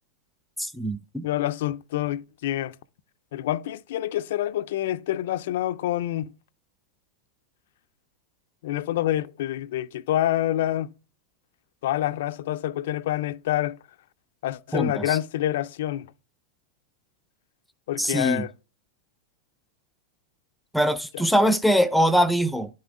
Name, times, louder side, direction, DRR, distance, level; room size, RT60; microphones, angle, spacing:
voice 1, 0.6-1.2 14.7-15.0 18.0-18.5 20.7-22.7, equal, ahead, 0.4 m, -22 dB
voice 2, 1.2-2.8 3.3-6.3 8.6-10.9 11.8-13.8 14.4-16.1 17.9-18.5 21.1-21.3, left 13 dB, 70° left, 0.3 m, -27 dB
10.0 x 4.2 x 3.6 m
hypercardioid pair, 115°, 0 cm